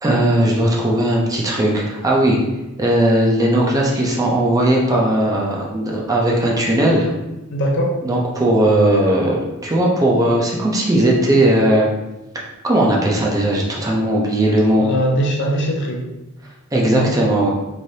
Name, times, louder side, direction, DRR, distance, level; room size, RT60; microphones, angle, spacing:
voice 1, 0.0-2.4 2.8-7.1 8.0-11.9 12.6-14.9 16.7-17.5, right 1 dB, 15° right, -3 dB, 0.4 m, -17 dB
voice 2, 7.5-8.0 14.8-16.0 16.9-17.1, equal, 55° left, 0 dB, 0.5 m, -21 dB
3.2 x 2.6 x 2.6 m, 1.0 s
head